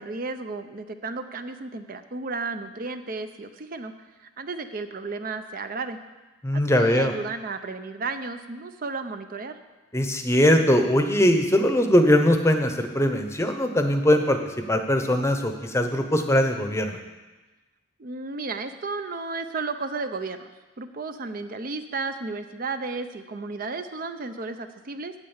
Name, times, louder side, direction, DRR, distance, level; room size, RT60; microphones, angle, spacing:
voice 1, 0.0-3.9 4.2-6.0 6.5-9.5 18.0-20.5 20.8-25.1, right 3 dB, 45° right, 9 dB, 0.5 m, -33 dB
voice 2, 6.4-7.1 9.9-14.4 14.7-17.0, left 1 dB, 15° left, 6 dB, 0.8 m, -21 dB
8.9 x 8.6 x 7.2 m, 1.2 s
head